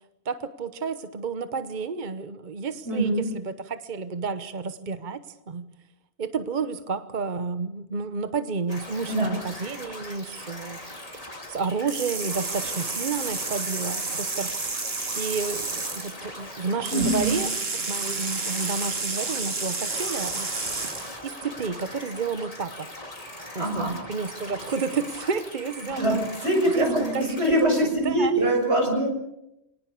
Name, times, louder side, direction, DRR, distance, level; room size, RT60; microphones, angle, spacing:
voice 1, 0.2-5.7 6.2-10.8 11.1-11.2 11.5-14.8 15.2-20.5 21.2-22.9 23.5-26.2 26.7-26.9 27.1-27.4 27.8-28.3, right 5 dB, 50° right, 11 dB, 1.1 m, -31 dB
voice 2, 2.9-3.3 9.1-9.3 16.9-17.3 23.6-23.9 25.9-29.1, right 1 dB, 90° right, 2 dB, 6.9 m, -23 dB
sound 1, 8.7-27.8, left 1 dB, 35° left, 3.3 m, -41 dB
sound 2, 11.9-16.1 16.9-21.2, right 3 dB, 70° right, 2.4 m, -31 dB
26.5 x 19.0 x 7.0 m, 0.86 s
omnidirectional pair, 1.1 m